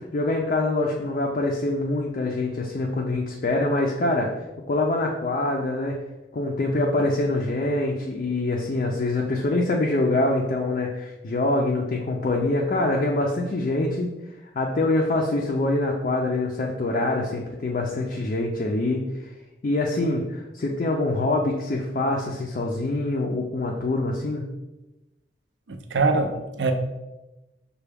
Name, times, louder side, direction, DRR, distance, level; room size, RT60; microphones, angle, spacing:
voice 1, 0.1-4.3 4.7-6.0 6.3-14.1 14.5-19.0 19.6-24.5, left 2 dB, 45° left, -1 dB, 0.4 m, -25 dB
voice 2, 25.7-26.7, right 3 dB, 80° right, 6 dB, 0.5 m, -23 dB
5.6 x 2.2 x 3.4 m, 1.0 s
head